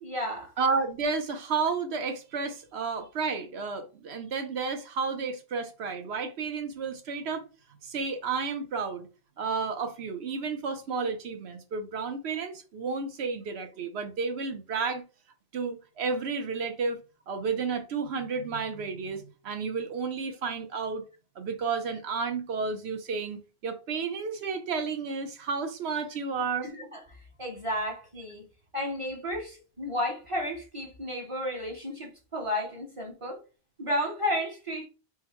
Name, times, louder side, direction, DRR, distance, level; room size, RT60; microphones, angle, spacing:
voice 1, 0.0-0.5 26.6-27.0 27.4-28.4 28.7-33.4 33.8-34.9, left 1 dB, 35° right, 0.9 m, -32 dB
voice 2, 0.6-7.4 7.8-9.1 9.4-15.0 15.5-17.0 17.3-21.0 21.4-26.7, right 5 dB, 85° right, 1.0 m, -31 dB
3.8 x 2.2 x 4.3 m
omnidirectional pair, 1.1 m